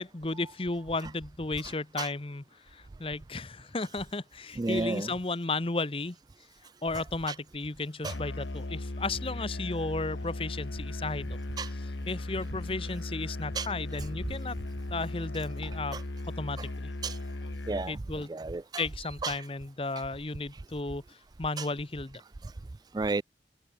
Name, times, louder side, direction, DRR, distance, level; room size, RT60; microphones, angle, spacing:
voice 1, 0.0-6.2 6.8-11.4 11.7-14.6 14.9-16.0 16.4-16.9 17.9-18.3 18.8-22.2, left 3 dB, 30° left, 0.9 m, -34 dB
voice 2, 4.6-5.1 8.0-8.1 11.6-11.7 13.6-13.7 15.9-16.0 17.0-17.2 17.7-18.0 18.3-18.8 19.2-19.3 21.6-21.7 22.9-23.2, right 3 dB, 20° right, 0.3 m, -31 dB
Musical instrument, 8.0-18.0, left 2 dB, 90° left, 1.4 m, -37 dB
head